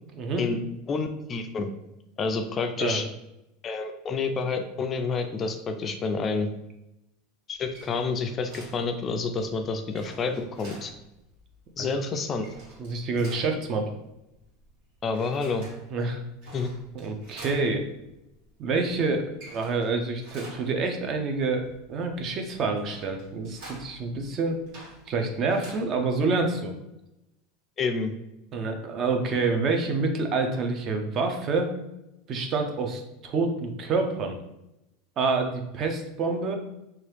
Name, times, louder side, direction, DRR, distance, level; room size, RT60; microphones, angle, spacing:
voice 1, 0.1-0.4 2.8-3.0 11.8-11.9 12.8-13.9 15.9-16.2 16.9-17.8 18.6-24.6 25.1-26.7 28.5-31.7 32.3-34.4 35.2-36.6, right 3 dB, 40° right, 4 dB, 0.5 m, -27 dB
voice 2, 0.9-1.7 2.2-3.0 3.6-6.5 7.5-10.9 11.8-12.5 15.0-15.7 16.5-16.7 27.8-28.1, left 4 dB, 30° left, 6 dB, 0.3 m, -29 dB
sound 1, 7.5-26.5, right 1 dB, 65° right, 1.4 m, -49 dB
2.9 x 2.3 x 3.2 m, 0.91 s
supercardioid pair, 130°, 0 cm